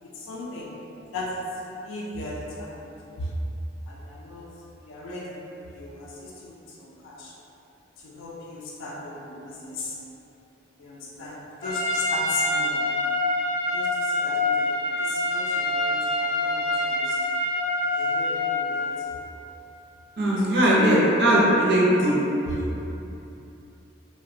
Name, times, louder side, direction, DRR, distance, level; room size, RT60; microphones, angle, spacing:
voice 1, 0.0-0.7 1.1-1.5 1.8-3.3 3.9-4.5 4.8-5.4 5.8-7.4 8.0-9.9 10.8-12.8 13.7-17.2 18.0-19.2 20.2-21.8 22.5-22.6, left 2 dB, 85° left, -4 dB, 0.3 m, -36 dB
Trumpet, 11.6-18.9, left 2 dB, 20° left, 0.4 m, -26 dB
voice 2, 20.2-22.1, right 1 dB, 55° right, -6 dB, 0.5 m, -19 dB
2.7 x 2.0 x 2.5 m, 2.9 s
head